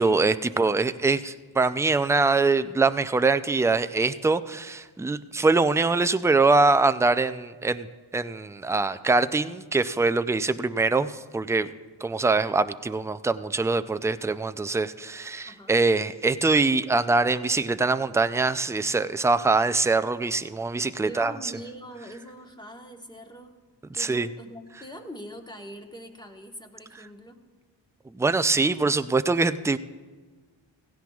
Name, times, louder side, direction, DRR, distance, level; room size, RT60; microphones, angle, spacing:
voice 1, 0.0-7.9 8.1-11.7 12.0-21.5 23.9-24.3 28.1-29.8, right 3 dB, 5° right, 12 dB, 0.3 m, -23 dB
voice 2, 15.5-15.8 21.0-23.5 23.9-27.4, equal, 10° left, 4 dB, 1.2 m, -43 dB
16.5 x 16.0 x 2.4 m, 1.4 s
wide cardioid pair, 75°, 44 cm